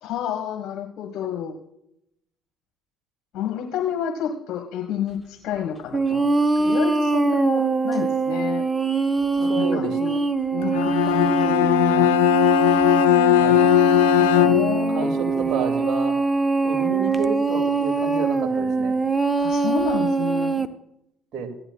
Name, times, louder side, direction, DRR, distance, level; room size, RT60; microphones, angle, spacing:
voice 1, 0.0-1.5 3.3-6.3 6.5-8.6 9.4-10.2 10.5-12.1 14.1-15.1 19.4-20.6, left 8 dB, 60° left, 5 dB, 1.3 m, -30 dB
sound 1, 5.9-20.7, right 4 dB, 15° right, 0.8 m, -23 dB
voice 2, 9.4-10.0 13.4-13.7 14.3-14.6 14.9-16.1 16.6-19.0 21.3-21.5, right 5 dB, 55° right, 4 dB, 2.2 m, -30 dB
Bowed string instrument, 10.6-14.9, left 13 dB, 80° left, 0.4 m, -18 dB
15.5 x 10.5 x 2.3 m, 0.78 s
hypercardioid pair, 60°, 0 cm